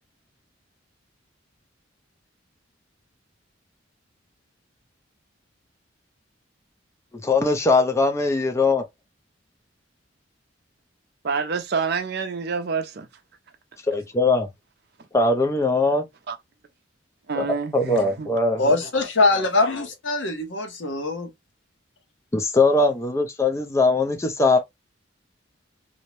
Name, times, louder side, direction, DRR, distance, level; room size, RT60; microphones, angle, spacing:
voice 1, 7.1-8.8 13.9-14.5 15.1-16.0 17.4-17.5 17.7-18.6 22.3-24.6, left 3 dB, 15° left, 0.4 m, -20 dB
voice 2, 11.2-13.1 16.3-16.4 17.3-18.3, right 5 dB, 55° right, 0.5 m, -27 dB
voice 3, 18.6-21.3, left 2 dB, 65° left, 0.9 m, -22 dB
2.6 x 2.0 x 3.0 m
head